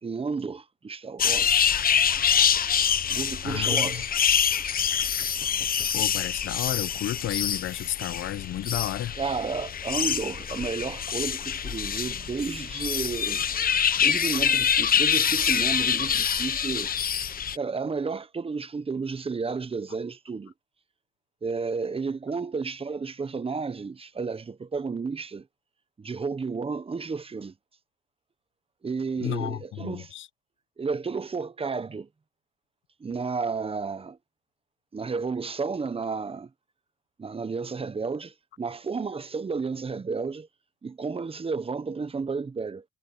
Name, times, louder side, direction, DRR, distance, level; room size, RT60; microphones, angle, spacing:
voice 1, 0.0-1.7 3.1-4.1 9.1-13.4 13.9-16.9 17.5-20.5 21.4-25.5 26.0-27.5 28.8-30.1 30.8-32.1 33.0-34.2 34.9-36.5 37.2-40.5 40.8-42.8, right 4 dB, 30° right, 1.1 m, -32 dB
sound 1, 1.2-17.6, left 8 dB, 45° left, 1.1 m, -25 dB
voice 2, 3.4-4.0 5.2-5.4 5.9-9.1 29.2-30.3, left 13 dB, 75° left, 1.0 m, -32 dB
cardioid pair, 90°, 20 cm